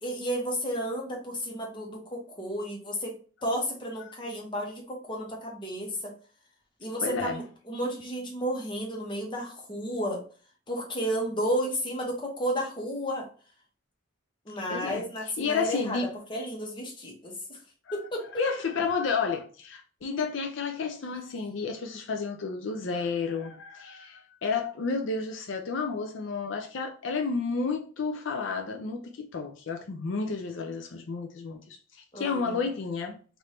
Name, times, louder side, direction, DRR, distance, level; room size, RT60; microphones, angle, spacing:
voice 1, 0.0-3.1 3.4-6.1 6.8-10.2 10.7-13.3 14.4-16.0 16.3-17.6 17.9-18.3 21.0-21.1 32.1-32.6, equal, 25° left, 1.0 m, -32 dB
voice 2, 7.0-7.4 14.7-15.0 15.4-16.1 17.9-18.0 18.4-33.1, left 4 dB, 65° left, 0.5 m, -31 dB
3.4 x 2.6 x 4.2 m
head